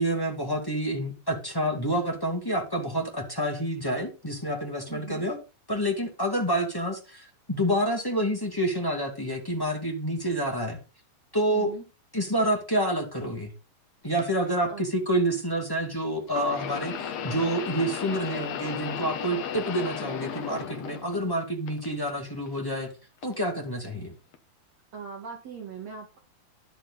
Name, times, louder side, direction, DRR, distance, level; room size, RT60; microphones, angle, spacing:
voice 1, 0.0-5.4 5.7-10.8 11.3-11.7 12.1-13.5 14.0-22.9 23.2-24.1, right 1 dB, 10° left, 1 dB, 1.2 m, -28 dB
voice 2, 4.9-5.3 11.5-11.9 14.7-14.9 24.9-26.2, right 6 dB, 50° right, 1 dB, 2.8 m, -40 dB
sound 1, 14.2-14.3 16.3-21.3 21.7-22.5 23.2-23.4 24.3-24.4, left 8 dB, 65° left, 1.7 m, -35 dB
11.5 x 9.8 x 4.1 m, 0.31 s
omnidirectional pair, 4.6 m